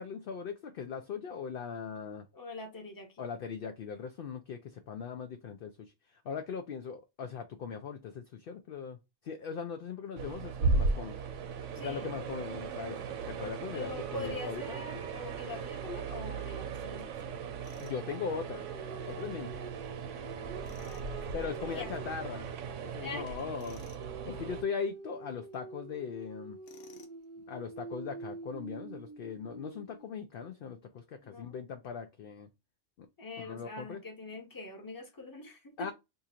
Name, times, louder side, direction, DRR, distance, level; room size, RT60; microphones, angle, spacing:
voice 1, 0.0-2.3 3.2-9.0 9.2-11.2 11.8-14.8 17.8-18.7 19.0-19.6 21.3-22.5 22.9-23.8 24.3-26.6 27.5-32.5 33.0-33.1 33.4-34.0 35.8-35.9, left 6 dB, 60° left, 0.6 m, -39 dB
voice 2, 2.3-3.3 11.7-12.1 13.7-17.3 20.8-22.1 22.9-23.4 31.2-31.6 33.2-35.9, left 2 dB, 20° left, 0.8 m, -44 dB
sound 1, 10.2-24.6, right 4 dB, 75° right, 1.0 m, -37 dB
sound 2, 13.8-16.8 17.8-22.6 24.0-30.1, right 4 dB, 50° right, 0.8 m, -48 dB
Tools, 17.6-18.0 20.6-21.1 23.6-24.1 26.6-27.2, left 7 dB, 80° left, 1.1 m, -55 dB
2.8 x 2.5 x 4.2 m
omnidirectional pair, 1.3 m